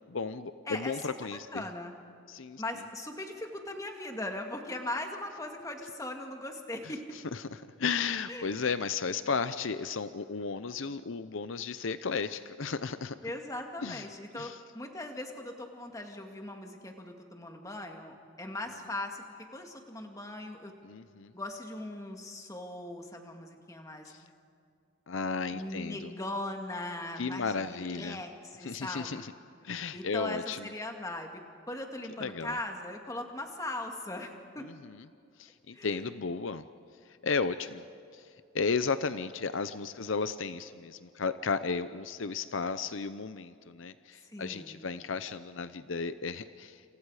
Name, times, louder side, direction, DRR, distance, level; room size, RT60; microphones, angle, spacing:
voice 1, 0.1-1.6 2.3-2.6 7.3-7.4 7.8-13.1 13.8-14.0 14.3-14.6 20.8-21.3 25.1-26.1 27.2-28.2 28.6-29.3 29.6-30.6 32.2-32.6 34.6-35.0 35.4-36.6 37.2-37.8 38.1-38.2 38.5-47.0, left 5 dB, 75° left, 12 dB, 0.7 m, -34 dB
voice 2, 0.7-1.0 1.5-1.9 2.6-7.0 8.3-8.7 13.2-19.2 19.5-20.7 21.3-24.3 25.5-29.2 29.9-31.4 31.7-34.7 35.7-36.0 44.2-44.8, left 1 dB, 15° left, 3 dB, 2.1 m, -39 dB
28.5 x 27.5 x 4.9 m, 2.4 s
head